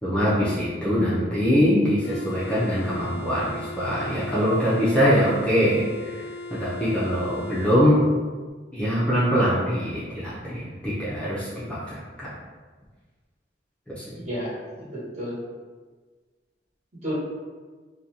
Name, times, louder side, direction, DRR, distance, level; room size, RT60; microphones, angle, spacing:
voice 1, 0.0-6.2 6.5-8.1 8.7-12.3 14.0-14.1, equal, 5° left, -10 dB, 0.4 m, -23 dB
sound 1, 2.0-7.8, left 1 dB, 65° left, 0.4 m, -38 dB
voice 2, 14.2-15.4 17.0-17.1, equal, 40° right, -9 dB, 1.1 m, -32 dB
2.5 x 2.2 x 2.8 m, 1.4 s
head